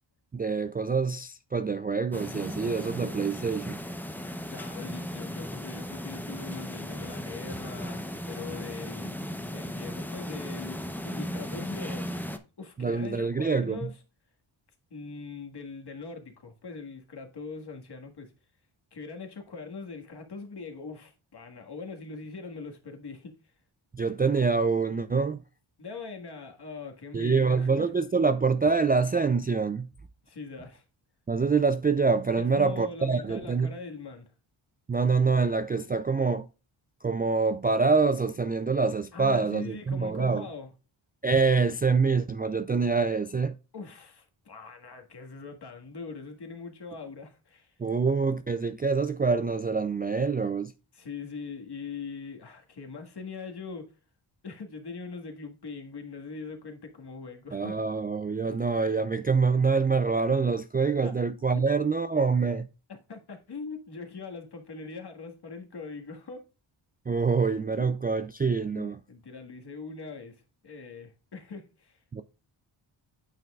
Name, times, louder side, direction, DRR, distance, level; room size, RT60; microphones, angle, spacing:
voice 1, 0.3-3.8 12.8-13.9 23.9-25.4 27.1-29.9 31.3-33.7 34.9-36.5 37.0-40.5 41.2-43.6 47.8-50.7 57.5-62.7 67.1-69.0 72.1-72.2, right 4 dB, 20° right, 0.3 m, -25 dB
sound 1, 2.1-12.4, equal, 5° left, 0.8 m, -36 dB
voice 2, 4.4-14.0 14.9-18.3 18.9-23.4 25.8-27.9 30.2-30.8 32.4-34.3 39.1-40.7 43.7-47.8 51.0-53.9 54.4-57.8 61.0-61.1 61.5-61.6 63.1-66.4 68.7-72.0, left 4 dB, 50° left, 1.8 m, -42 dB
9.1 x 5.8 x 2.3 m
wide cardioid pair, 90°, 49 cm